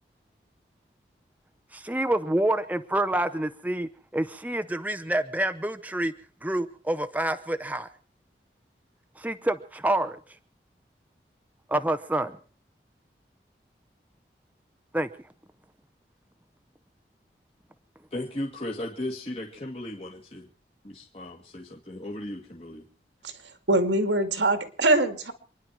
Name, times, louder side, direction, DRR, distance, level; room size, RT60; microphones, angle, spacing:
voice 1, 1.7-6.1 6.4-7.9 9.2-10.2 11.7-12.4 14.9-15.1, right 1 dB, 10° right, 9 dB, 0.8 m, -27 dB
voice 2, 18.1-20.5 20.8-22.8, left 1 dB, 35° left, -1 dB, 2.1 m, -36 dB
voice 3, 23.7-25.3, right 2 dB, 85° right, 8 dB, 2.4 m, -23 dB
28.0 x 10.5 x 4.6 m, 0.41 s
head